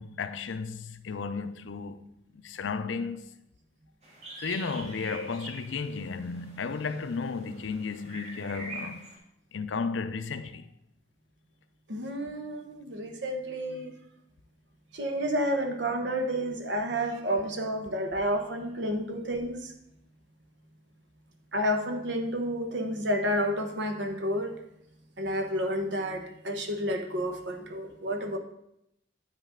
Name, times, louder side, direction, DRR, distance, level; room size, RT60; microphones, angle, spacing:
voice 1, 0.0-3.3 4.4-9.1 9.5-10.7, left 4 dB, 90° left, 0.5 m, -34 dB
sound 1, 4.0-9.2, right 2 dB, 35° right, 1.5 m, -45 dB
voice 2, 11.9-13.9 14.9-19.6 21.5-24.6 25.2-28.4, equal, 70° right, 1.0 m, -30 dB
9.1 x 5.4 x 3.7 m
head